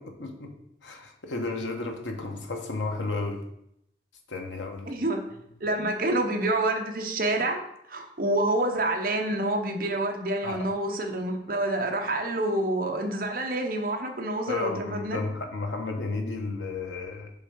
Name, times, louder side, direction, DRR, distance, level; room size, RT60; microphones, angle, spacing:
voice 1, 0.1-0.5 0.8-3.4 4.3-4.9 10.4-10.7 14.5-17.3, left 3 dB, 90° left, 3 dB, 1.1 m, -33 dB
voice 2, 4.9-5.2 5.6-7.6 7.9-15.2, right 1 dB, 50° right, 3 dB, 0.9 m, -27 dB
6.9 x 3.6 x 5.5 m, 0.78 s
head